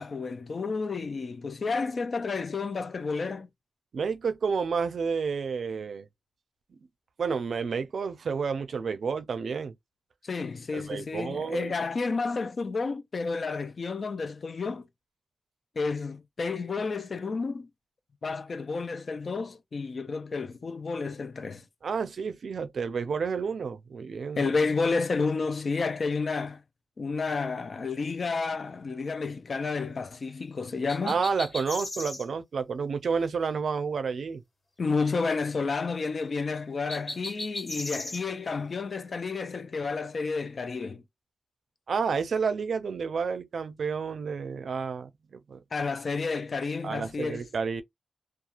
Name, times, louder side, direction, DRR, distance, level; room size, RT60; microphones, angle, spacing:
voice 1, 0.0-3.5 10.2-14.9 15.8-17.7 18.2-21.6 24.4-26.6 27.0-31.2 34.8-41.0 45.7-47.5, left 4 dB, 55° left, 0.4 m, -31 dB
voice 2, 3.9-6.1 7.2-9.7 10.7-11.7 21.8-24.5 31.1-34.4 41.9-45.6 46.8-47.8, right 5 dB, 80° right, 0.4 m, -30 dB
sound 1, 30.9-32.3 36.9-38.2, left 2 dB, 30° left, 1.5 m, -37 dB
2.4 x 2.3 x 2.9 m
wide cardioid pair, 100°, 0 cm